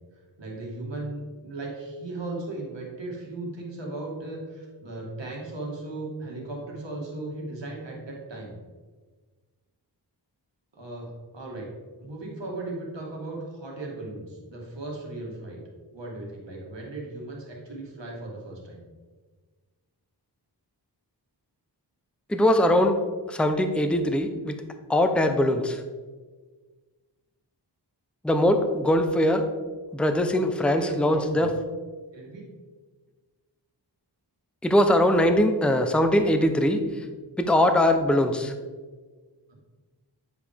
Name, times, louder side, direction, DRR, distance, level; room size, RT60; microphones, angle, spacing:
voice 1, 0.4-8.6 10.7-11.7 12.0-15.6 15.9-18.8 30.6-31.5 32.1-32.5, right 2 dB, 85° right, -2 dB, 1.8 m, -37 dB
voice 2, 22.3-23.0 23.3-24.6 24.9-25.8 28.2-29.4 29.9-31.5 34.6-36.8 37.4-38.5, left 1 dB, 5° left, 7 dB, 0.6 m, -21 dB
9.6 x 4.9 x 3.5 m, 1.4 s
wide cardioid pair, 50°, 43 cm